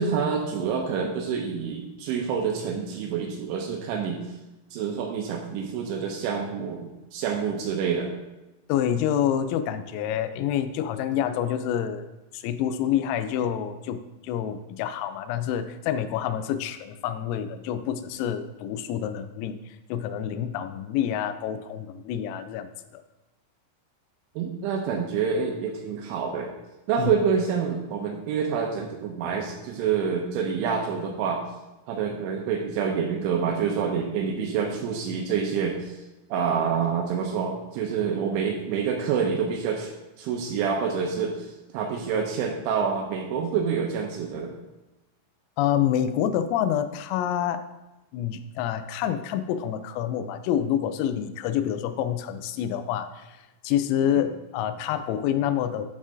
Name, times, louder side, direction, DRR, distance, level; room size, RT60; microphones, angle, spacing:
voice 1, 0.0-4.2 4.7-8.2 24.4-26.5 26.9-31.4 31.9-35.9 36.3-44.5 54.0-54.2, right 6 dB, 80° right, 2 dB, 2.9 m, -27 dB
voice 2, 8.7-23.0 27.0-27.1 45.6-47.6 48.1-53.4 53.6-55.9, left 10 dB, 90° left, 10 dB, 3.2 m, -27 dB
12.5 x 6.3 x 2.6 m, 1.0 s
omnidirectional pair, 5.8 m